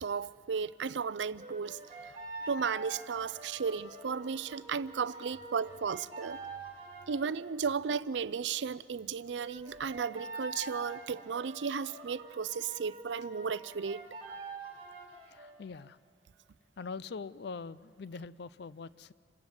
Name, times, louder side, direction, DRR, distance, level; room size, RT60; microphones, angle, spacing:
voice 1, 0.0-1.8 2.1-2.2 2.5-6.4 7.1-14.1, right 6 dB, 90° right, 0.5 m, -34 dB
sound 1, 1.4-7.6 9.4-15.6, right 2 dB, 35° right, 3.0 m, -46 dB
voice 2, 15.3-16.0 16.8-19.1, left 4 dB, 65° left, 0.5 m, -43 dB
27.5 x 15.5 x 7.9 m
head